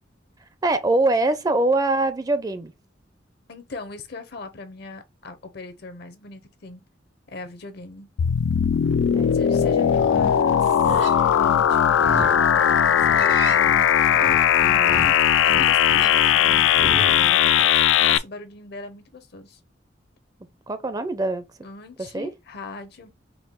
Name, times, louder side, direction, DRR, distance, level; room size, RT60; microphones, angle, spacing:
voice 1, 0.6-2.7 9.1-10.0 14.6-15.2 20.7-21.4 22.0-22.3, right 2 dB, 20° right, 0.4 m, -24 dB
voice 2, 3.5-6.8 7.3-8.1 9.3-10.7 11.3-13.8 15.4-16.7 17.0-19.6 21.6-23.1, left 3 dB, 60° left, 0.8 m, -40 dB
sound 1, 8.2-18.2, left 9 dB, 80° left, 0.3 m, -18 dB
Livestock farm animals working animals, 9.8-17.2, right 2 dB, 85° right, 0.8 m, -36 dB
4.6 x 2.2 x 3.6 m
head